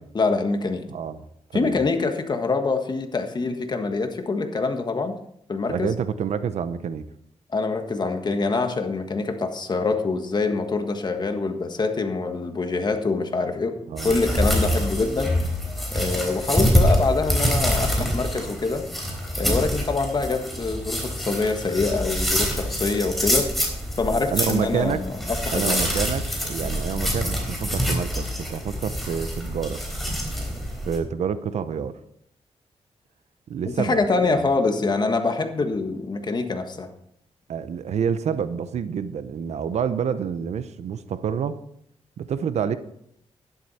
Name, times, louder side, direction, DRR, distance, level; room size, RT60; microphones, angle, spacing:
voice 1, 0.1-0.8 1.5-5.2 5.5-5.9 7.5-13.7 14.0-15.3 15.9-18.8 19.4-23.5 24.0-26.0 33.7-36.9, left 3 dB, 40° left, 6 dB, 1.5 m, -25 dB
voice 2, 0.9-1.2 1.5-1.8 5.7-7.1 13.9-14.2 14.6-14.8 24.3-25.1 25.5-29.8 30.9-31.9 33.5-34.4 37.5-41.6 42.2-42.8, right 7 dB, 85° right, 12 dB, 0.8 m, -28 dB
sound 1, 14.0-31.0, equal, ahead, 3.6 m, -25 dB
12.0 x 11.0 x 4.3 m, 0.72 s
wide cardioid pair, 110°, 11 cm